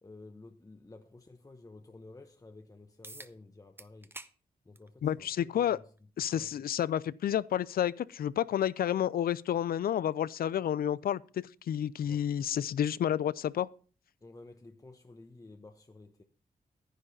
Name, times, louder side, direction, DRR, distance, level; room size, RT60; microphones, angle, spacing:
voice 1, 0.0-4.1 4.6-5.8 6.2-6.6 12.0-12.3 14.2-16.2, left 2 dB, 25° left, 1.0 m, -52 dB
sound 1, 3.0-3.3 3.8-4.3 4.7-4.9 6.0-6.1 11.0-11.1, right 2 dB, 15° right, 0.7 m, -47 dB
voice 2, 5.0-5.8 6.2-13.7, left 10 dB, 80° left, 0.5 m, -30 dB
10.0 x 9.9 x 4.1 m
cardioid pair, 75°, 15 cm